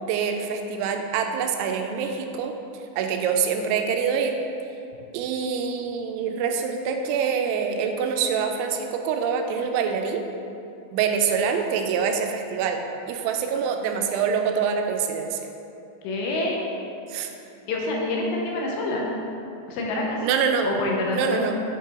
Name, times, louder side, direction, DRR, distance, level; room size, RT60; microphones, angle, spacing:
voice 1, 0.0-2.5 3.0-4.4 5.1-10.2 10.9-12.8 13.1-15.4 17.1-17.3 20.2-20.7 21.1-21.6, right 6 dB, 90° right, 4 dB, 3.0 m, -25 dB
voice 2, 16.0-16.6 17.7-19.1 19.7-20.2 20.6-21.4, left 2 dB, 80° left, -2 dB, 2.8 m, -26 dB
7.8 x 5.5 x 3.7 m, 2.7 s
omnidirectional pair, 5.3 m